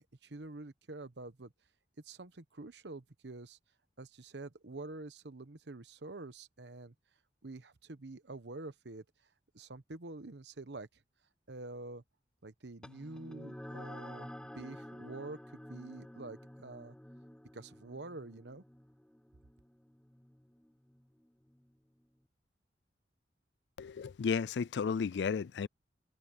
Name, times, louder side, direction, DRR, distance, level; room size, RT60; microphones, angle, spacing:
voice 1, 0.2-1.5 2.0-3.6 4.0-6.9 7.4-9.0 9.5-10.9 11.5-12.0 12.4-14.3 14.5-16.9 17.5-18.6, right 2 dB, 75° right, 1.1 m, -47 dB
sound 1, 12.8-21.7, left 1 dB, 5° left, 0.4 m, -50 dB
voice 2, 23.8-25.7, left 6 dB, 70° left, 0.4 m, -33 dB
head